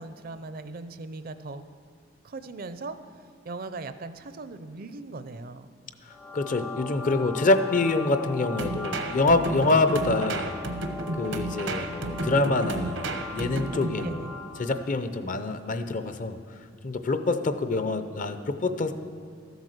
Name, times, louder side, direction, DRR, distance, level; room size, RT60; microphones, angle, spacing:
voice 1, 0.0-1.6 2.2-3.0 3.4-5.7 14.0-14.3, right 3 dB, 50° right, 11 dB, 0.5 m, -39 dB
sound 1, 6.1-14.9, left 4 dB, 5° left, 0.3 m, -39 dB
voice 2, 6.3-10.6 11.2-14.3 14.6-16.4 16.8-18.9, left 2 dB, 45° left, 9 dB, 0.6 m, -26 dB
sound 2, 8.6-14.1, right 2 dB, 80° right, 0.9 m, -32 dB
13.5 x 8.1 x 6.5 m, 2.1 s
head